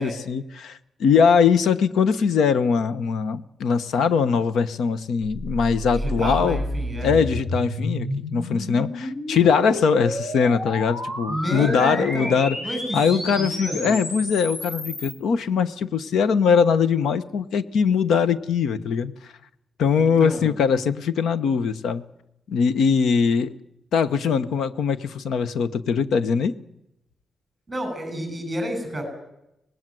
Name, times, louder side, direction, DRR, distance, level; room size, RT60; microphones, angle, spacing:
voice 1, 0.0-6.6 7.0-12.6 12.9-19.3 19.8-22.0 22.5-23.5 23.9-26.5, left 6 dB, 80° left, 14 dB, 1.1 m, -21 dB
sound 1, 5.2-15.1, left 1 dB, 40° left, 5.1 m, -31 dB
voice 2, 5.9-7.2 11.3-14.0 20.0-20.5 27.7-29.0, equal, 10° right, 6 dB, 8.0 m, -30 dB
25.0 x 20.0 x 7.8 m, 0.85 s
wide cardioid pair, 175°, 0 cm